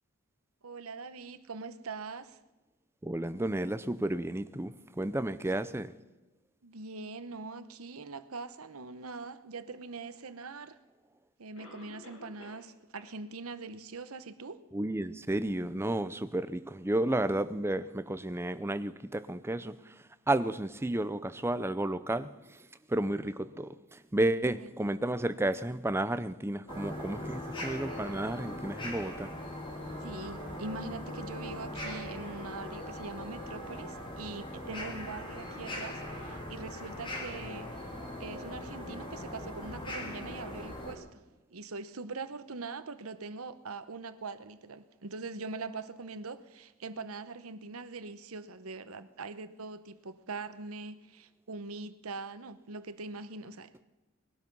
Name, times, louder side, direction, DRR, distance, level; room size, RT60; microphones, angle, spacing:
voice 1, 0.6-2.4 6.6-10.8 11.4-14.6 24.5-24.7 30.0-37.8 38.2-41.2 41.5-53.7, right 3 dB, 70° right, 0.9 m, -42 dB
voice 2, 3.0-5.9 14.7-19.7 20.3-22.3 22.9-29.3, right 1 dB, 10° right, 0.6 m, -32 dB
Cough, 10.4-10.5 11.6-12.7 12.9-13.1 13.6-13.7 14.3-14.4, left 2 dB, 65° left, 2.9 m, -51 dB
sound 1, 26.7-40.9, left 1 dB, 25° left, 2.8 m, -40 dB
20.0 x 12.0 x 5.4 m
head